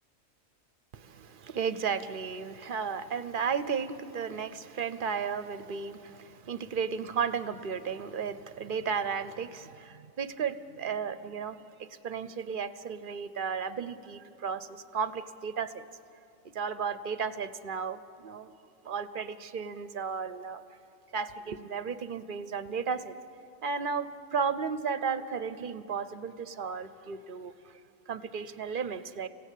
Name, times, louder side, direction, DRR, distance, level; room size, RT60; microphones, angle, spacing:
voice 1, 0.9-15.8 16.5-18.5 18.8-20.6 21.1-23.1 23.6-27.7 28.1-29.3, right 6 dB, 50° right, 13 dB, 0.7 m, -34 dB
27.0 x 16.5 x 8.3 m, 2.7 s
omnidirectional pair, 1.4 m